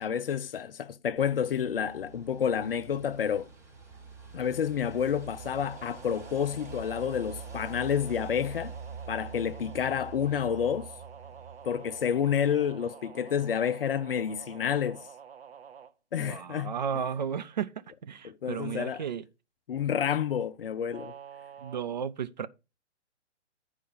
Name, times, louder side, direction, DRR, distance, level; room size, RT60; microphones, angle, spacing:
voice 1, 0.0-3.5 4.3-8.8 9.1-10.9 11.6-15.1 16.1-16.7 18.2-19.0 19.7-21.1, left 8 dB, 50° left, 0.6 m, -29 dB
sound 1, 1.2-12.9, right 5 dB, 5° right, 2.0 m, -46 dB
sound 2, 5.4-15.9 20.9-21.8, right 8 dB, 55° right, 1.0 m, -49 dB
voice 2, 16.2-17.7 18.0-19.2 21.6-22.5, right 7 dB, 40° right, 0.5 m, -33 dB
9.8 x 4.8 x 5.5 m
figure-of-eight pair, 130°, 36 cm